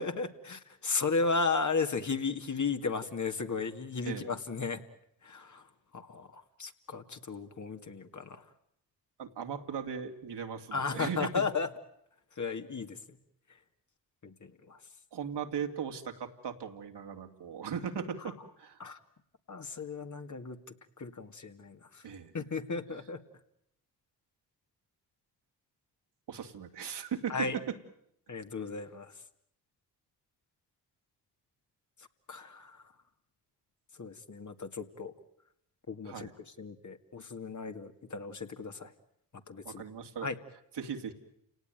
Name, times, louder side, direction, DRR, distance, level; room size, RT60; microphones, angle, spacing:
voice 1, 0.0-4.8 5.2-5.6 5.9-8.4 10.7-11.7 12.4-13.0 14.2-14.8 18.8-19.0 19.5-20.6 21.0-22.0 22.3-23.2 27.3-27.6 28.3-29.1 32.3-32.8 34.0-35.1 35.9-36.3 36.6-38.9 39.5-39.8 40.2-40.3, left 4 dB, 40° left, 6 dB, 2.3 m, -35 dB
voice 2, 4.0-4.3 9.2-11.5 15.1-18.8 22.0-22.3 26.3-27.7 36.0-36.3 39.6-40.3 40.7-41.1, right 7 dB, 60° right, 5 dB, 2.6 m, -38 dB
29.5 x 18.5 x 9.3 m, 0.76 s
hypercardioid pair, 45°, 46 cm